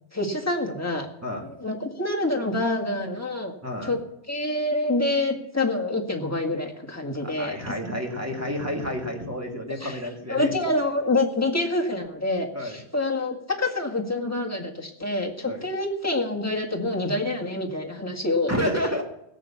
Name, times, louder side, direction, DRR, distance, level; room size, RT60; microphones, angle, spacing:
voice 1, 0.1-1.1 1.4-3.5 3.8-4.0 4.3-7.6 9.8-10.0 10.3-18.5, left 2 dB, 15° left, -1 dB, 1.9 m, -26 dB
voice 2, 3.6-3.9 7.2-10.5 12.5-12.8 15.4-15.6 18.5-19.0, equal, 10° right, 1 dB, 2.2 m, -30 dB
16.5 x 7.8 x 7.1 m, 0.79 s
omnidirectional pair, 1.2 m